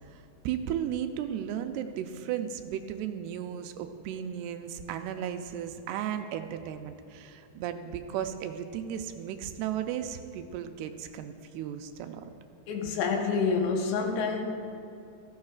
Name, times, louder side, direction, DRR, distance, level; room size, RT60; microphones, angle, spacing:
voice 1, 0.1-12.3, right 9 dB, 85° right, 7 dB, 2.6 m, -35 dB
voice 2, 12.7-14.4, left 5 dB, 90° left, 2 dB, 3.3 m, -27 dB
16.0 x 14.0 x 2.4 m, 2.7 s
omnidirectional pair, 4.8 m